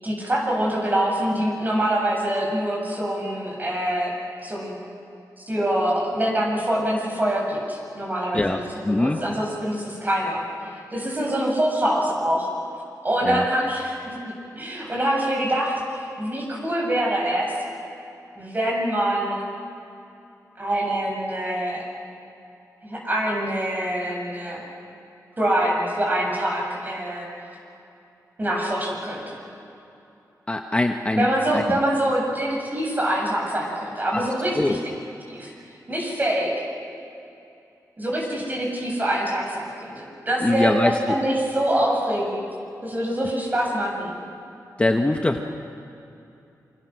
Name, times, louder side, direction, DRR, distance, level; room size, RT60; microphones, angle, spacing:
voice 1, 0.0-4.2 4.4-4.7 5.5-10.4 10.9-12.5 13.0-14.2 14.5-17.6 18.3-19.4 20.6-21.8 22.8-24.6 25.4-27.3 28.4-29.4 31.1-34.8 35.3-35.5 35.9-36.6 38.0-42.4 42.8-44.1, right 1 dB, 25° right, -1 dB, 8.0 m, -25 dB
voice 2, 8.8-9.2 13.2-13.4 30.5-31.3 31.5-31.6 34.1-34.3 34.6-34.8 40.4-41.1 44.8-45.4, left 2 dB, 20° left, 4 dB, 1.2 m, -22 dB
27.5 x 26.0 x 6.4 m, 2.8 s
wide cardioid pair, 105°, 7 cm